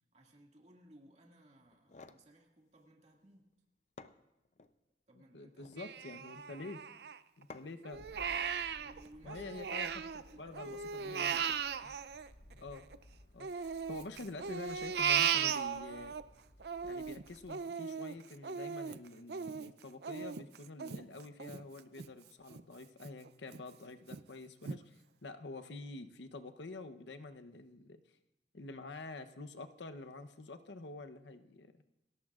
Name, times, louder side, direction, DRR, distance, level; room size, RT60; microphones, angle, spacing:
voice 1, 0.1-3.5 5.1-5.9 8.8-9.7 10.3-11.0, right 1 dB, 40° right, 0 dB, 2.1 m, -60 dB
sound 1, 1.7-2.3 3.5-3.6 4.0-4.8 5.4-5.9 7.5-7.9, left 3 dB, 40° left, 0.5 m, -54 dB
voice 2, 5.2-6.8 7.4-8.0 9.2-11.6 11.8-11.9 12.6-12.9 13.3-16.2 16.8-24.9 25.2-28.0 28.5-32.0, left 3 dB, 90° left, 8 dB, 0.9 m, -48 dB
Crying sobbing, 5.8-7.4 7.8-10.2 10.5-13.0 13.4-16.2 16.6-22.1 22.5-22.6 23.0-23.6 24.1-24.2 24.7-24.8, right 7 dB, 65° right, 0.5 m, -37 dB
sound 2, 7.9-17.5, left 1 dB, 75° left, 1.6 m, -60 dB
28.5 x 14.0 x 2.5 m, 0.93 s
head